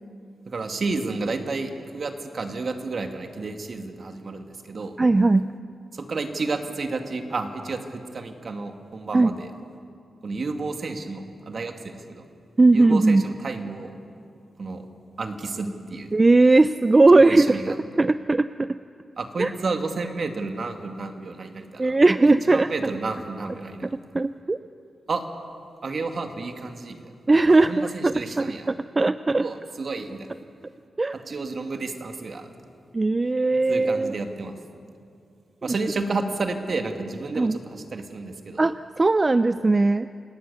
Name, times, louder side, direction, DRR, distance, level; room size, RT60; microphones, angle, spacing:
voice 1, 0.5-5.0 5.9-9.5 10.2-12.2 12.7-13.9 14.6-14.9 15.2-16.1 17.1-17.8 19.2-21.9 22.2-23.9 25.1-25.2 25.8-27.1 27.5-28.7 29.4-30.3 31.3-32.5 33.7-34.5 35.6-38.6, right 3 dB, 60° right, 5 dB, 2.2 m, -31 dB
voice 2, 5.0-5.5 9.1-9.3 12.6-13.2 16.1-18.8 19.4-19.5 21.8-22.7 23.8-23.9 24.1-24.6 27.3-29.5 31.0-31.2 32.9-34.1 37.4-37.6 38.6-40.1, right 2 dB, 35° right, 13 dB, 0.5 m, -19 dB
29.0 x 18.5 x 7.0 m, 2.5 s
cardioid pair, 50°, 0 cm